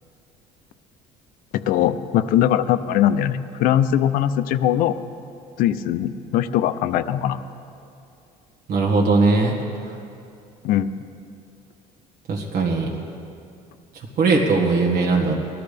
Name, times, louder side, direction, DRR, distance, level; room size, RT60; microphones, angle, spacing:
voice 1, 1.5-5.0 5.6-7.4 10.6-10.9, left 11 dB, 65° left, 12 dB, 0.5 m, -21 dB
voice 2, 8.7-9.6 12.3-12.9 14.2-15.3, right 3 dB, 60° right, -1 dB, 1.8 m, -19 dB
19.5 x 12.5 x 3.4 m, 2.6 s
cardioid pair, 135°, 15 cm